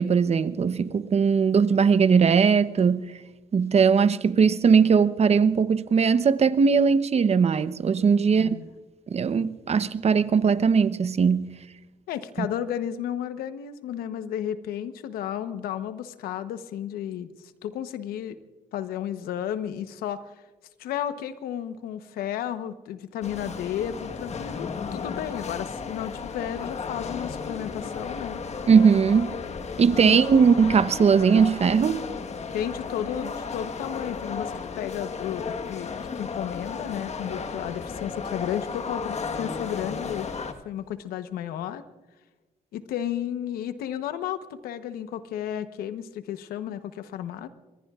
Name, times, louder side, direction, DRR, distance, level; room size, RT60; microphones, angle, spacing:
voice 1, 0.0-3.0 3.5-8.5 9.1-11.5 12.4-12.5 28.7-29.3 29.8-32.0, right 6 dB, 45° right, 0.9 m, -20 dB
voice 2, 8.3-8.7 12.1-18.4 18.7-20.4 20.8-28.4 30.0-30.2 32.5-41.8 42.7-47.5, left 10 dB, 85° left, 1.0 m, -33 dB
sound 1, 23.2-40.5, left 5 dB, 45° left, 1.4 m, -34 dB
25.0 x 22.5 x 2.4 m
supercardioid pair, 70°, 15 cm